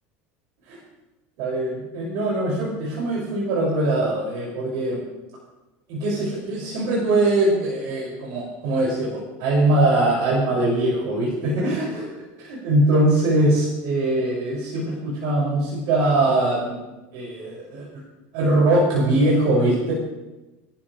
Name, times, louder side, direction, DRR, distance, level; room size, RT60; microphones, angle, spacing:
voice 1, 1.4-5.0 5.9-12.1 12.4-16.8 17.1-17.9 18.3-19.9, right 1 dB, 70° right, -5 dB, 6.9 m, -22 dB
23.5 x 12.5 x 3.5 m, 1.1 s
supercardioid pair, 115°, 7 cm